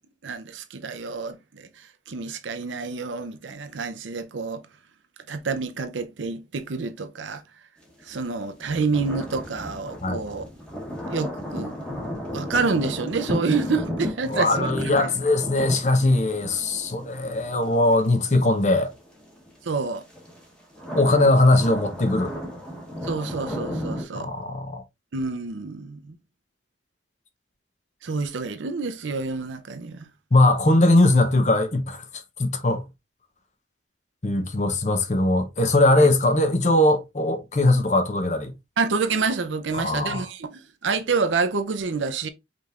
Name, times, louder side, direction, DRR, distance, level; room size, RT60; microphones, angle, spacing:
voice 1, 0.2-1.7 2.1-4.6 5.3-7.4 8.1-10.4 11.1-11.7 12.3-15.1 19.6-20.0 23.0-24.3 25.1-26.1 28.0-30.1 38.8-42.3, right 4 dB, 85° right, 0.6 m, -28 dB
sound 1, 8.0-19.5 20.0-24.0, equal, 5° left, 1.3 m, -34 dB
voice 2, 14.3-18.9 20.9-22.3 24.1-24.8 30.3-32.0 32.4-32.8 34.2-38.5 39.7-40.3, left 2 dB, 40° left, 0.7 m, -20 dB
5.1 x 3.3 x 2.5 m
head